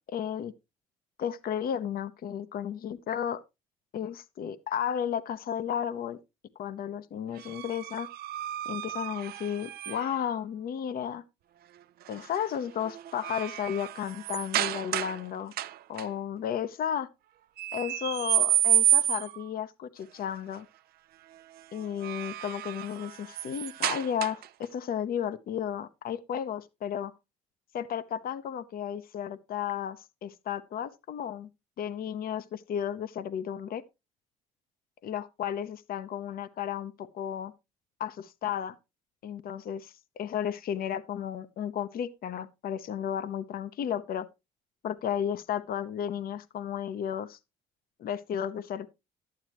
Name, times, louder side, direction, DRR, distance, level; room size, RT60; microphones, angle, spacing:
voice 1, 0.1-0.5 1.2-3.4 3.9-6.2 6.6-8.1 8.6-11.2 12.1-15.5 15.9-17.1 17.7-20.7 21.7-27.1 27.7-31.5 31.8-33.8 35.0-37.5 38.0-38.8 39.2-44.3 44.8-47.4 48.0-48.9, left 9 dB, 60° left, 0.9 m, -33 dB
sound 1, 7.4-10.3 12.1-12.4 12.8-15.2 15.5-16.1 17.6-19.5 21.8-24.6, right 12 dB, 65° right, 0.6 m, -30 dB
11.5 x 9.6 x 3.0 m
supercardioid pair, 65°, 17 cm